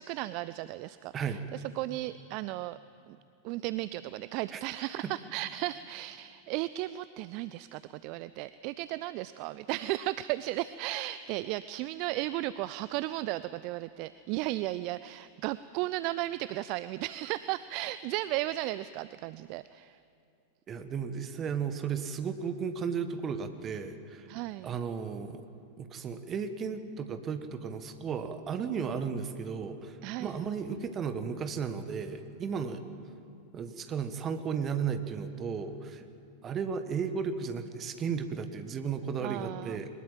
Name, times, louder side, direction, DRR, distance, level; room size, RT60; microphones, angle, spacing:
voice 1, 0.0-2.8 3.1-3.2 3.4-20.0 24.3-24.7 30.0-30.4 39.2-39.8, right 16 dB, 45° right, 16 dB, 0.4 m, -35 dB
voice 2, 20.7-24.3 24.6-25.4 25.8-32.8 33.5-36.0 36.4-39.9, right 6 dB, 25° right, 9 dB, 1.7 m, -34 dB
22.5 x 20.5 x 7.6 m, 2.7 s
figure-of-eight pair, 90°, 0 cm